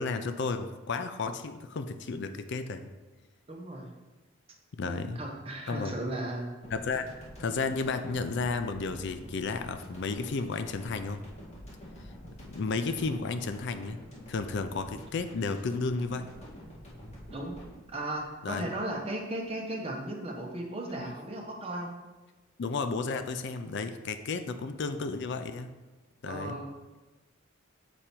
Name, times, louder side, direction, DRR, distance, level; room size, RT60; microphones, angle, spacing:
voice 1, 0.0-2.9 4.7-5.2 5.7-5.9 6.7-7.1 7.4-11.2 12.4-14.0 14.3-16.3 18.4-18.7 21.0-21.1 22.6-25.7 26.2-26.6, left 4 dB, 55° left, 9 dB, 0.5 m, -33 dB
voice 2, 3.5-3.9 4.9-6.5 17.3-17.6 17.9-21.9 26.2-26.7, right 1 dB, 30° right, 0 dB, 1.1 m, -36 dB
sound 1, 6.6-19.1, equal, 35° left, 1.9 m, -48 dB
7.1 x 5.0 x 4.4 m, 1.2 s
head